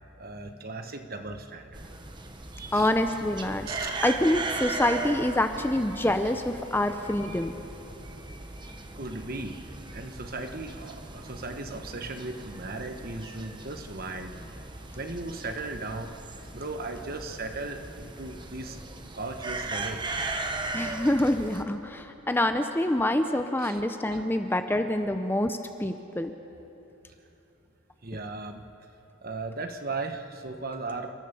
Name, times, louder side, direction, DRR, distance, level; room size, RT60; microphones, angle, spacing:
voice 1, 0.2-1.8 2.5-2.9 3.6-4.0 8.9-9.6 9.9-14.4 14.9-16.1 16.5-18.8 19.1-20.1 23.6-23.8 24.1-24.2 28.0-28.6 29.2-31.1, right 3 dB, 45° right, 6 dB, 1.3 m, -37 dB
sound 1, 1.7-21.6, right 3 dB, 20° right, 1.1 m, -38 dB
voice 2, 2.7-3.7 4.0-7.5 20.7-26.3, left 1 dB, 10° left, 7 dB, 0.6 m, -26 dB
30.0 x 13.5 x 7.0 m, 2.9 s
head